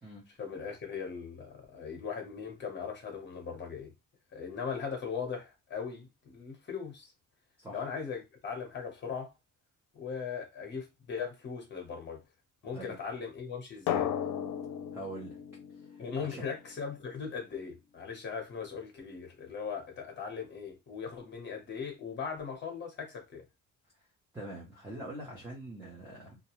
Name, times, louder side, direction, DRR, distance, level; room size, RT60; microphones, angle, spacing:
voice 1, 0.4-3.9 4.3-7.1 7.7-9.3 9.9-12.2 12.6-14.1 16.0-23.4, left 6 dB, 35° left, 0.9 m, -39 dB
Drum, 13.9-16.6, left 9 dB, 80° left, 0.5 m, -35 dB
voice 2, 14.9-15.4 15.9-16.5 24.3-26.4, right 1 dB, 10° right, 0.8 m, -44 dB
2.4 x 2.2 x 2.9 m
cardioid pair, 175°, 31 cm